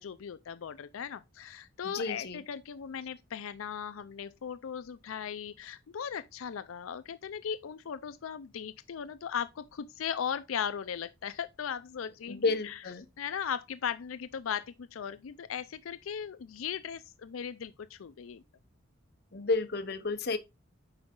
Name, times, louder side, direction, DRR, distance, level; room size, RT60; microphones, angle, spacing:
voice 1, 0.0-12.8 13.2-18.4, left 8 dB, 90° left, 0.4 m, -38 dB
voice 2, 1.8-2.4 12.3-13.0 19.3-20.4, left 3 dB, 50° left, 0.8 m, -31 dB
7.9 x 4.8 x 3.7 m
head